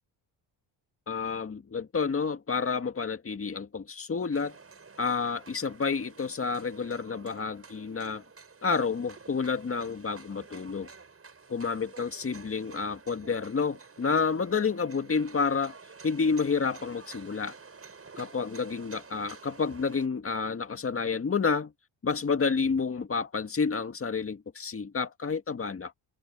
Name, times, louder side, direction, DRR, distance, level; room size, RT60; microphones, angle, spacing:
voice 1, 1.1-4.5 5.0-8.2 8.6-10.9 11.5-15.7 16.0-17.5 18.2-21.7 22.0-25.9, left 5 dB, 30° left, 1.8 m, -29 dB
sound 1, 4.3-20.1, right 5 dB, 30° right, 6.8 m, -50 dB
cardioid pair, 105°, 45 cm